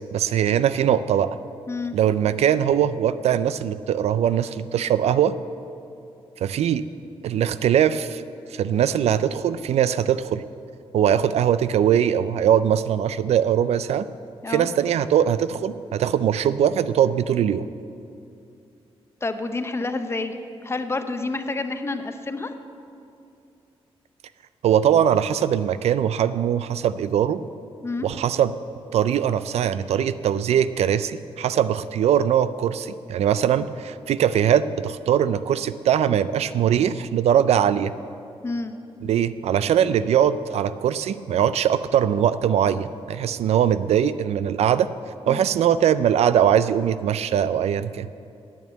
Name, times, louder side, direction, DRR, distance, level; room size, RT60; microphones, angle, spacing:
voice 1, 0.1-1.4 1.9-5.4 6.4-6.8 7.2-8.2 8.5-10.4 10.9-14.1 14.5-17.7 24.6-27.4 28.0-28.5 28.9-37.9 39.0-44.9 45.3-48.1, right 9 dB, 90° right, 14 dB, 0.4 m, -21 dB
voice 2, 19.2-20.3 20.6-22.5 27.8-28.1 38.4-38.7 45.3-45.5, left 3 dB, 25° left, 8 dB, 0.7 m, -28 dB
9.4 x 8.7 x 8.1 m, 2.6 s
wide cardioid pair, 125°, 10 cm